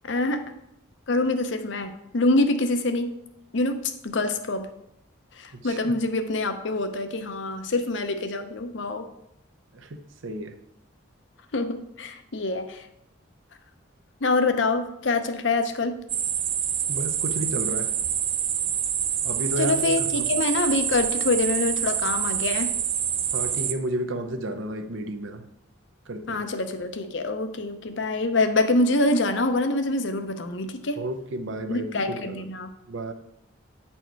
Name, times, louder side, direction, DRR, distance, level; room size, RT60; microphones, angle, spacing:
voice 1, 0.0-0.5 1.1-3.1 3.5-4.7 5.4-9.1 11.5-12.9 14.2-16.0 19.6-22.7 26.3-31.0 31.7-32.7, left 2 dB, 65° left, 8 dB, 0.7 m, -25 dB
voice 2, 5.6-5.9 9.7-10.5 16.9-17.9 19.2-20.3 23.3-25.4 26.1-26.4 31.0-32.4 32.9-33.1, right 1 dB, 70° right, 8 dB, 0.7 m, -32 dB
sound 1, 16.1-23.7, right 9 dB, 30° right, 0.3 m, -26 dB
9.2 x 4.4 x 4.6 m, 0.83 s
head